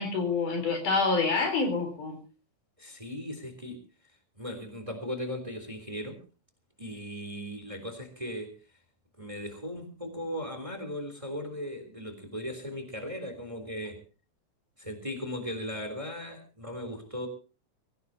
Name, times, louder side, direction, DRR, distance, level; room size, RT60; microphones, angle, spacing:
voice 1, 0.0-2.2, left 4 dB, 80° left, 6 dB, 5.5 m, -27 dB
voice 2, 2.8-3.8 4.3-6.2 6.8-8.5 9.2-14.0 14.8-17.3, equal, 10° right, 7 dB, 3.3 m, -37 dB
23.5 x 16.5 x 2.9 m, 0.34 s
omnidirectional pair, 3.5 m